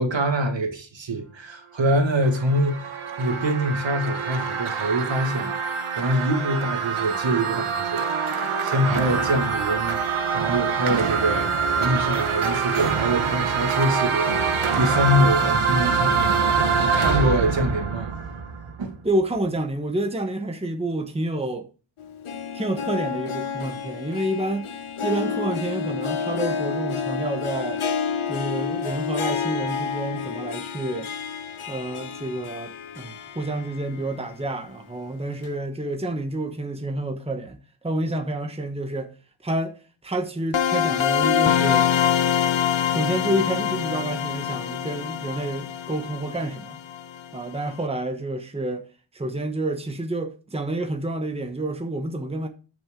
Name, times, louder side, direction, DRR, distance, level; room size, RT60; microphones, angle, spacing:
voice 1, 0.0-5.5 6.0-10.0 10.3-11.5 11.8-18.1 18.8-18.9, equal, 65° right, 2.0 m, -25 dB
sound 1, 2.0-19.0, right 5 dB, 85° right, 1.2 m, -25 dB
voice 2, 19.0-21.7 22.5-27.8 28.3-31.1 31.7-39.1 39.4-41.9 42.9-46.8 47.3-48.9 49.1-52.5, right 1 dB, 10° right, 1.1 m, -29 dB
Harp, 22.0-34.1 34.5-34.6 35.4-35.5, left 6 dB, 90° left, 1.1 m, -30 dB
sound 2, 40.5-47.2, left 9 dB, 65° left, 0.9 m, -24 dB
12.5 x 6.2 x 3.7 m
wide cardioid pair, 135°, 48 cm